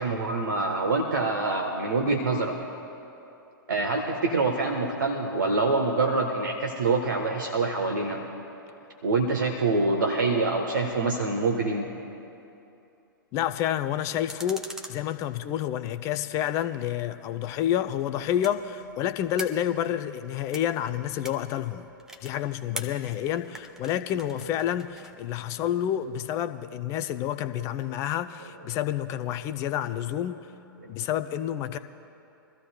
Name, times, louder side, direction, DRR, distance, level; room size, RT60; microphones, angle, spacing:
voice 1, 0.0-2.6 3.7-8.2 9.0-11.9 30.8-30.9, right 3 dB, 65° right, 3 dB, 1.1 m, -25 dB
voice 2, 13.3-14.6 14.9-21.9 22.2-30.4 30.9-31.8, left 11 dB, 25° left, 11 dB, 0.4 m, -29 dB
sound 1, 14.3-15.9 17.3-25.1, right 1 dB, 5° right, 0.7 m, -44 dB
24.5 x 14.0 x 2.2 m, 2.8 s
figure-of-eight pair, 110°, 12 cm